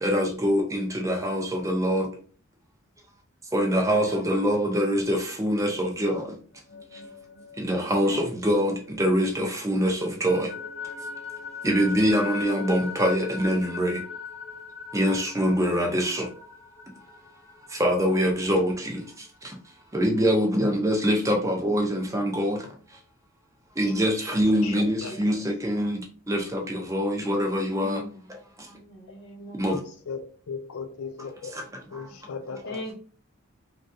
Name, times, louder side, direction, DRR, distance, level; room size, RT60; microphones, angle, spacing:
voice 1, 0.0-2.0 3.5-6.1 7.6-8.2 8.4-8.7 9.0-10.5 11.6-14.0 14.9-16.2 17.8-18.7 19.9-22.6 23.8-26.0 26.3-28.0 29.6-29.7, equal, 15° right, 0.6 m, -24 dB
voice 2, 3.8-4.3 7.8-8.3 24.4-25.2 28.6-29.6 32.5-32.9, left 1 dB, 50° left, 1.0 m, -41 dB
sound 1, 6.5-9.4 9.7-19.1, left 5 dB, 25° left, 0.9 m, -40 dB
voice 3, 24.6-25.4 30.1-30.2 30.5-31.5 31.9-32.8, left 5 dB, 85° left, 0.4 m, -37 dB
3.1 x 2.5 x 2.6 m
head